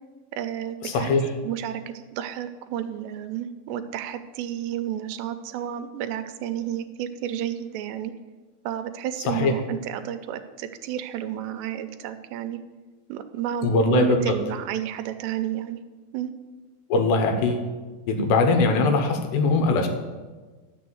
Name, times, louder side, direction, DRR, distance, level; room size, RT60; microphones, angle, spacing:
voice 1, 0.3-1.1 1.4-8.1 8.7-12.6 13.1-15.8 16.1-16.3, right 10 dB, 85° right, 9 dB, 2.9 m, -31 dB
voice 2, 0.8-1.3 9.3-9.5 13.6-14.4 16.9-17.7 18.1-19.9, left 3 dB, 80° left, 5 dB, 3.3 m, -21 dB
11.0 x 6.8 x 7.8 m, 1.3 s
omnidirectional pair, 4.9 m